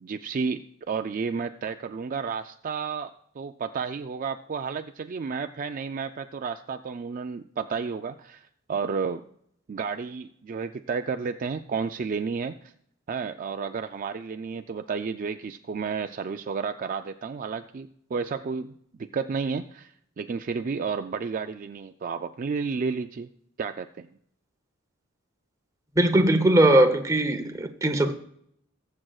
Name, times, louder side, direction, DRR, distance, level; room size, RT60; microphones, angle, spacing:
voice 1, 0.0-9.3 9.7-12.7 13.1-23.3 23.6-24.1, right 5 dB, 40° right, 0.3 m, -32 dB
voice 2, 26.0-28.1, right 1 dB, 15° right, 0.8 m, -20 dB
20.5 x 7.5 x 2.4 m
head